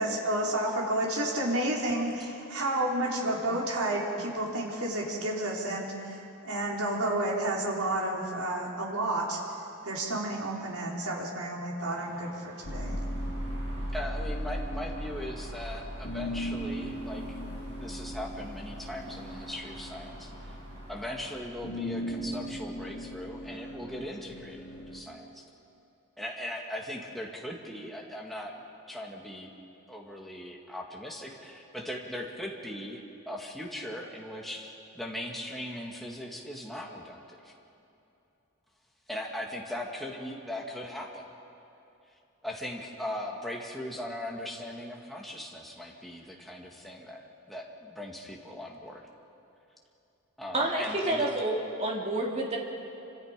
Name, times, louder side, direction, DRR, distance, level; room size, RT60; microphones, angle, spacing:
voice 1, 0.0-6.2 6.4-9.4 9.8-13.0, right 1 dB, 80° right, -3 dB, 4.7 m, -30 dB
sound 1, 11.9-21.4, right 1 dB, 55° right, 6.8 m, -51 dB
sound 2, 12.6-25.0, equal, 50° left, 3.1 m, -37 dB
voice 2, 13.9-20.5 20.9-25.4 26.2-29.5 29.9-37.5 39.1-41.3 42.4-49.0 50.4-51.2, left 1 dB, ahead, -2 dB, 2.2 m, -39 dB
voice 3, 50.5-52.6, right 1 dB, 30° right, -2 dB, 3.2 m, -29 dB
29.0 x 26.0 x 5.3 m, 2.8 s
head